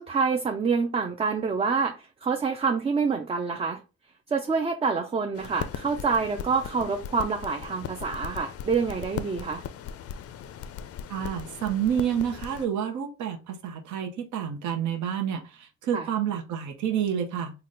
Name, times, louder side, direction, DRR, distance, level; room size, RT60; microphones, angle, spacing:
voice 1, 0.0-3.8 4.3-9.6 15.9-16.1, right 5 dB, 20° right, 0.3 m, -27 dB
sound 1, 5.4-12.7, left 8 dB, 50° left, 0.4 m, -38 dB
voice 2, 11.1-17.6, right 9 dB, 75° right, 0.8 m, -29 dB
3.9 x 2.2 x 3.7 m
cardioid pair, 90°, 30 cm